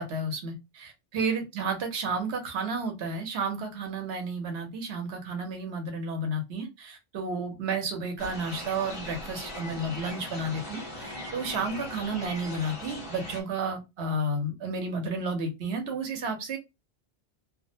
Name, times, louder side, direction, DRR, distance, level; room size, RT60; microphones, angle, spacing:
voice 1, 0.0-16.6, right 2 dB, 90° right, 0.9 m, -32 dB
sound 1, 8.2-13.4, left 1 dB, 30° left, 1.0 m, -40 dB
2.4 x 2.1 x 2.6 m
omnidirectional pair, 1.1 m